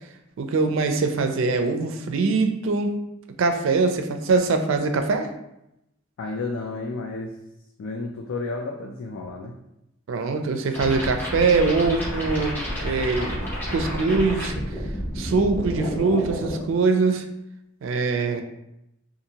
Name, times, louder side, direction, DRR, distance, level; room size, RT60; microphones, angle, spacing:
voice 1, 0.4-3.0 3.4-5.3 10.1-13.4 13.7-14.9 15.2-17.3 17.8-18.4, right 4 dB, 75° right, 6 dB, 0.4 m, -23 dB
voice 2, 6.2-7.3 7.8-9.5, left 3 dB, 70° left, 1 dB, 0.3 m, -31 dB
sound 1, 10.7-16.6, equal, 10° left, 0.7 m, -30 dB
2.7 x 2.5 x 2.8 m, 0.84 s
head